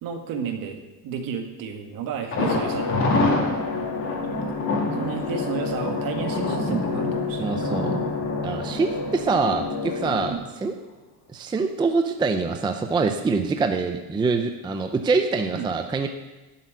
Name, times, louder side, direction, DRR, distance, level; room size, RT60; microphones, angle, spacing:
voice 1, 0.0-3.4 4.9-7.5 10.2-10.4 15.5-15.7, right 6 dB, 55° right, 5 dB, 2.0 m, -32 dB
sound 1, 2.3-10.3, left 4 dB, 75° left, 2.5 m, -30 dB
Thunder, 2.3-10.1 10.4-10.5 10.9-11.0, left 2 dB, 30° left, 2.6 m, -28 dB
voice 2, 7.4-7.9 8.4-10.3 10.6-10.7 11.3-16.1, right 4 dB, 10° right, 6 dB, 0.5 m, -24 dB
12.0 x 8.0 x 9.5 m, 1.1 s
cardioid pair, 170°, 40 cm